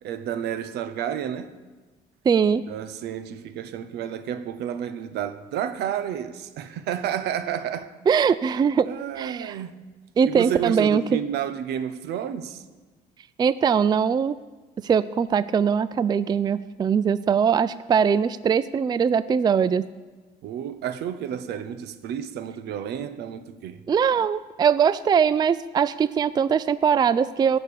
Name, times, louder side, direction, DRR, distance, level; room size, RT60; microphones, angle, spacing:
voice 1, 0.0-1.6 2.5-7.9 8.8-9.9 10.2-12.6 20.4-23.9, right 9 dB, 75° right, 1.0 m, -31 dB
voice 2, 2.3-2.7 8.1-8.9 9.2-9.6 10.2-11.2 13.4-14.4 14.8-19.9 23.9-27.6, right 7 dB, 25° right, 0.4 m, -21 dB
16.5 x 6.8 x 8.7 m
cardioid pair, 110°, 17 cm